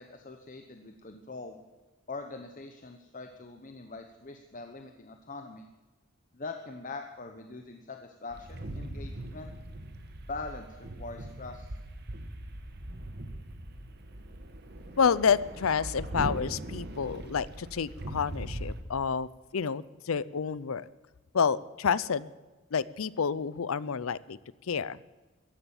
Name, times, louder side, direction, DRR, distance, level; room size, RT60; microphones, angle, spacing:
voice 1, 0.0-1.6 2.1-5.7 6.3-9.5 10.3-11.7, left 3 dB, 40° left, 5 dB, 1.0 m, -43 dB
sound 1, 8.3-18.8, right 1 dB, 50° right, 1.5 m, -40 dB
voice 2, 15.0-19.3 19.5-20.9 21.3-22.3 22.7-24.4 24.7-25.0, left 6 dB, 80° left, 19 dB, 0.6 m, -29 dB
15.0 x 11.0 x 7.2 m, 1.2 s
head